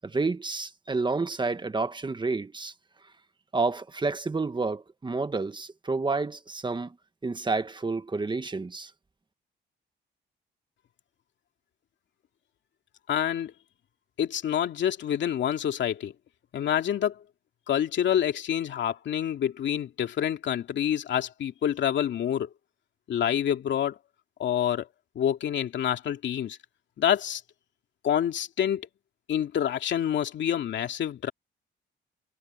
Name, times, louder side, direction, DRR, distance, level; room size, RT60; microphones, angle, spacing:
voice 1, 0.0-2.7 3.5-6.9 7.2-8.9, right 3 dB, 25° right, 1.5 m, -29 dB
voice 2, 13.1-13.5 14.2-16.1 16.5-17.2 17.7-22.5 23.1-24.0 24.4-24.9 25.1-26.6 27.0-27.4 28.0-28.9 29.3-31.3, left 10 dB, 65° left, 2.5 m, -27 dB
cardioid pair, 90°, 20 cm